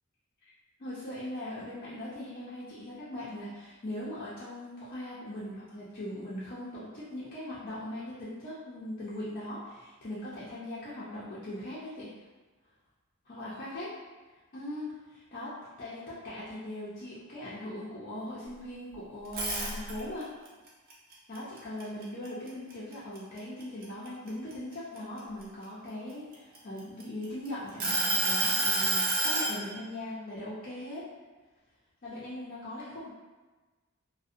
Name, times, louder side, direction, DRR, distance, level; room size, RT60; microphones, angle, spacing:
voice 1, 0.8-12.1 13.3-13.9 14.5-20.3 21.3-31.1 32.0-33.1, left 1 dB, 40° left, -9 dB, 0.4 m, -40 dB
sound 1, 19.2-20.2 20.7-22.5 22.9-23.2 23.6-25.4 26.1-27.2 27.8-29.6, right 2 dB, 45° right, 0.5 m, -28 dB
2.6 x 2.1 x 2.4 m, 1.3 s
head